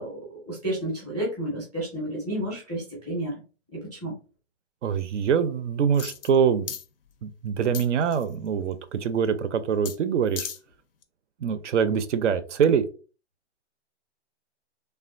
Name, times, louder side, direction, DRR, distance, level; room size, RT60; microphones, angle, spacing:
voice 1, 0.0-3.4 3.7-4.1, right 1 dB, ahead, -4 dB, 0.5 m, -31 dB
voice 2, 4.8-6.7 7.2-10.5 11.4-12.8, right 7 dB, 70° right, 12 dB, 0.5 m, -24 dB
sound 1, 5.9-6.4 6.7-6.8 7.7-8.3 9.9-10.0 10.3-10.6 11.0-11.1, left 7 dB, 50° left, 0.4 m, -35 dB
3.2 x 2.4 x 2.4 m, 0.36 s
hypercardioid pair, 170°, 37 cm